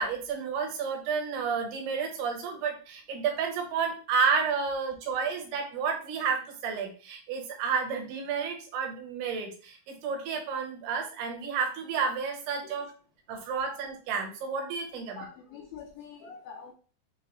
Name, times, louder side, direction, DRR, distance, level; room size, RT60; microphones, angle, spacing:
voice 1, 0.0-12.9 13.3-15.2, right 5 dB, 75° right, 3 dB, 2.8 m, -31 dB
voice 2, 14.9-16.7, left 6 dB, 75° left, -3 dB, 2.1 m, -46 dB
7.0 x 2.4 x 3.0 m, 0.38 s
omnidirectional pair, 4.9 m